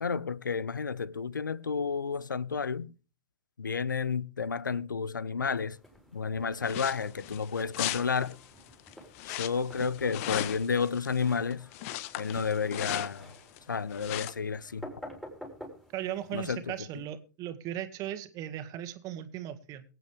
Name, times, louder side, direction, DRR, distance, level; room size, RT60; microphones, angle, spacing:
voice 1, 0.0-2.9 3.6-5.8 6.1-8.4 9.2-11.7 12.2-13.4 13.7-14.9 16.3-17.0, left 5 dB, 90° left, 0.6 m, -31 dB
sound 1, 5.7-16.6, equal, 5° left, 4.5 m, -51 dB
sound 2, 6.6-13.6 13.9-14.3, left 14 dB, 50° left, 1.0 m, -37 dB
voice 2, 15.9-19.8, right 12 dB, 35° right, 1.8 m, -37 dB
23.0 x 9.0 x 3.5 m
hypercardioid pair, 105°, 10 cm